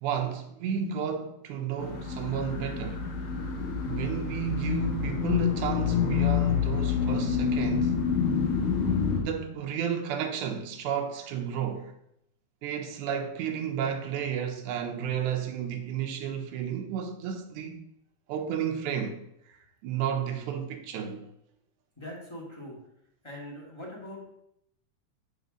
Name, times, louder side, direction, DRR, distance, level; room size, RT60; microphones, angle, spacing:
voice 1, 0.0-3.1 3.8-8.0 9.2-11.9 12.6-17.8 18.3-19.2 19.5-19.6 19.8-21.3, right 8 dB, 85° right, 2.3 m, -32 dB
sound 1, 1.8-9.2, left 7 dB, 85° left, 2.7 m, -27 dB
voice 2, 22.0-22.8 23.2-24.2, left 1 dB, 10° left, 1.7 m, -41 dB
7.5 x 4.0 x 6.4 m
omnidirectional pair, 3.4 m